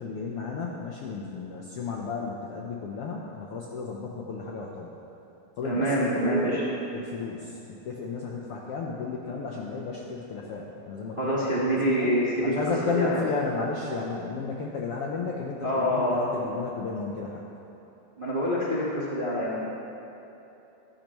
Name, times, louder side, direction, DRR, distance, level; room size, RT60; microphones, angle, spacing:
voice 1, 0.0-4.9 5.6-12.1 12.4-17.4, left 4 dB, 85° left, -2 dB, 1.3 m, -33 dB
voice 2, 5.6-6.6 11.2-12.6 12.9-13.2 15.6-16.3 18.2-19.7, equal, 40° right, -7 dB, 0.7 m, -26 dB
15.5 x 12.0 x 3.1 m, 2.9 s
omnidirectional pair, 3.7 m